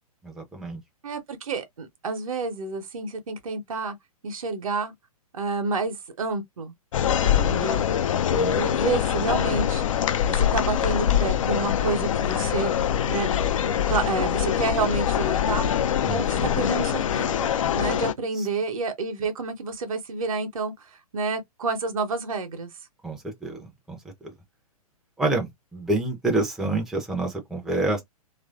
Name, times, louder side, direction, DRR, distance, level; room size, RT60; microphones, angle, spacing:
voice 1, 0.2-0.8 7.2-7.5 8.3-8.6 16.1-16.6 18.4-18.5 23.0-24.0 24.2-24.3 25.2-28.0, right 2 dB, ahead, 0.5 m, -28 dB
voice 2, 1.0-4.0 4.2-4.9 5.3-6.7 7.4-7.8 8.5-9.9 10.3-12.7 13.1-13.4 13.9-15.7 16.1-20.7 21.1-22.7, right 4 dB, 60° right, 0.8 m, -29 dB
sound 1, 6.9-18.1, left 9 dB, 60° left, 0.4 m, -24 dB
2.9 x 2.5 x 2.3 m
figure-of-eight pair, 115°, 19 cm